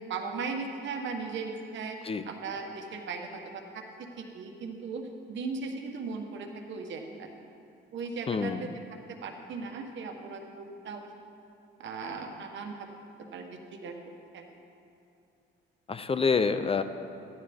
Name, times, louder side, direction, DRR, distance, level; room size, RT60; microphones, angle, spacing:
voice 1, 0.0-2.0 2.3-3.8 4.2-7.3 7.9-8.7 9.1-11.1 11.8-12.9 13.3-14.0 14.3-14.4, right 4 dB, 70° right, 4 dB, 1.3 m, -37 dB
voice 2, 8.3-8.7 15.9-16.8, left 5 dB, 30° left, 10 dB, 0.5 m, -27 dB
14.0 x 11.0 x 3.5 m, 2.7 s
cardioid pair, 90°, 20 cm